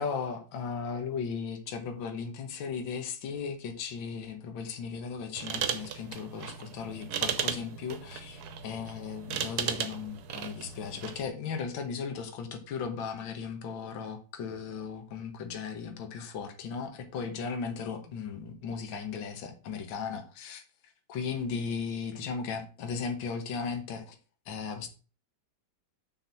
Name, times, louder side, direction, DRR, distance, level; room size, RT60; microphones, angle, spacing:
voice 1, 0.0-20.6 21.1-24.2 24.5-24.9, left 5 dB, 70° left, 6 dB, 1.8 m, -36 dB
sound 1, 5.4-11.3, right 8 dB, 60° right, 1.2 m, -36 dB
6.4 x 4.3 x 5.7 m, 0.35 s
omnidirectional pair, 2.2 m